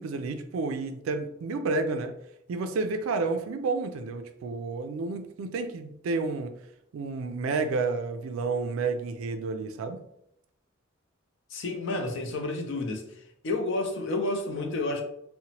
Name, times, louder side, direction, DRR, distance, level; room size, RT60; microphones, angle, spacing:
voice 1, 0.0-2.1 2.5-6.5 6.9-10.0, right 3 dB, 85° right, 0.3 m, -30 dB
voice 2, 11.5-13.0 13.4-15.0, left 2 dB, 60° left, 0.5 m, -30 dB
2.8 x 2.1 x 2.7 m
head